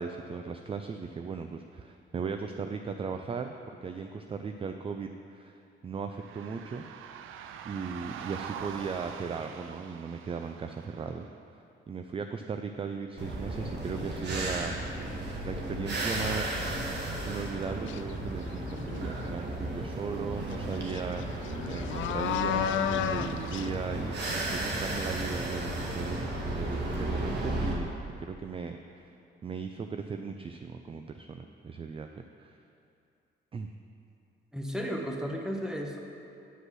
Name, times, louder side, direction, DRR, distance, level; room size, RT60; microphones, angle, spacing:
voice 1, 0.0-6.8 7.6-11.3 11.9-15.1 15.4-16.6 17.2-21.3 21.6-26.2 26.5-27.9 28.2-29.1 29.4-32.6 33.5-33.7, right 5 dB, 30° right, 6 dB, 0.4 m, -37 dB
sound 1, 6.1-11.3, right 8 dB, 85° right, 0.5 m, -44 dB
sound 2, 13.2-27.7, right 1 dB, 60° right, 1.7 m, -34 dB
sound 3, 17.9-18.1 18.6-19.2 20.5-20.6 20.9-23.7, left 10 dB, 75° left, 0.4 m, -32 dB
voice 2, 34.5-36.0, equal, 5° right, 1 dB, 1.2 m, -34 dB
9.9 x 5.3 x 6.1 m, 2.6 s
cardioid pair, 90°, 20 cm